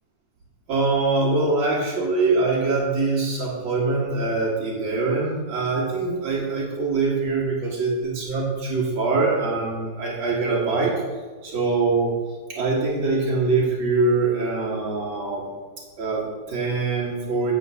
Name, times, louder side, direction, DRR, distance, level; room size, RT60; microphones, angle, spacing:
voice 1, 0.7-10.9 11.4-12.1 12.5-15.5 16.0-17.5, right 3 dB, 85° right, -5 dB, 2.6 m, -23 dB
8.3 x 3.9 x 6.8 m, 1.3 s
omnidirectional pair, 2.1 m